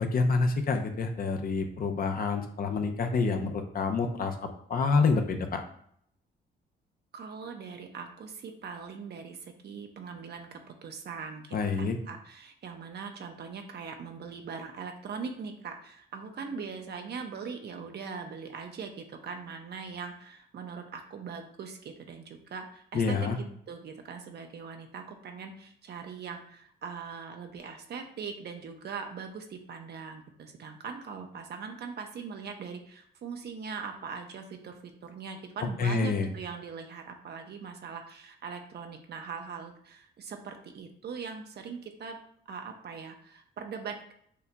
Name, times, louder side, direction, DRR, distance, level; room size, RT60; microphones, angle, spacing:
voice 1, 0.0-5.6 11.5-12.0 22.9-23.4 35.8-36.3, left 4 dB, 45° left, 5 dB, 0.6 m, -27 dB
voice 2, 7.1-42.2 42.5-44.1, right 5 dB, 55° right, 4 dB, 0.7 m, -41 dB
6.6 x 2.7 x 2.2 m, 0.65 s
cardioid pair, 90°, 20 cm